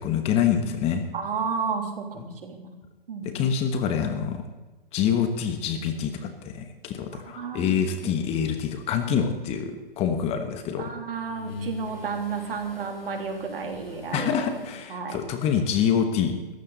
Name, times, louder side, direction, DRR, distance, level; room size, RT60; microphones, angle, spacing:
voice 1, 0.0-1.0 3.2-4.4 4.9-10.9 14.1-16.4, left 7 dB, 20° left, 7 dB, 1.2 m, -26 dB
voice 2, 1.1-2.7 3.1-3.3 7.1-8.1 10.8-14.3 14.9-15.2, right 5 dB, 70° right, 4 dB, 3.3 m, -32 dB
sound 1, 8.4-8.7 9.1-10.5 10.8-14.8, left 3 dB, 75° left, 6.3 m, -42 dB
17.5 x 14.5 x 4.1 m, 1.2 s
hypercardioid pair, 140°, 29 cm